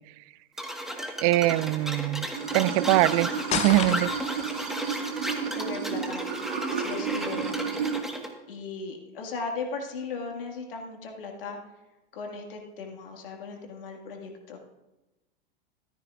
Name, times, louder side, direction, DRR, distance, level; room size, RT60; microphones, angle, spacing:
sound 1, 0.6-8.3, equal, ahead, 1.3 m, -34 dB
voice 1, 1.2-2.3 2.5-4.1, right 17 dB, 40° right, 17 dB, 0.4 m, -23 dB
Water / Sink (filling or washing), 2.3-8.0, right 7 dB, 60° right, 1.8 m, -32 dB
sound 2, 3.5-4.4, left 7 dB, 25° left, 0.8 m, -30 dB
voice 2, 5.5-6.2 6.7-7.5 8.5-11.6 12.1-14.6, left 4 dB, 65° left, 2 dB, 1.8 m, -37 dB
14.0 x 13.0 x 2.4 m, 1.0 s
figure-of-eight pair, 95°, 30 cm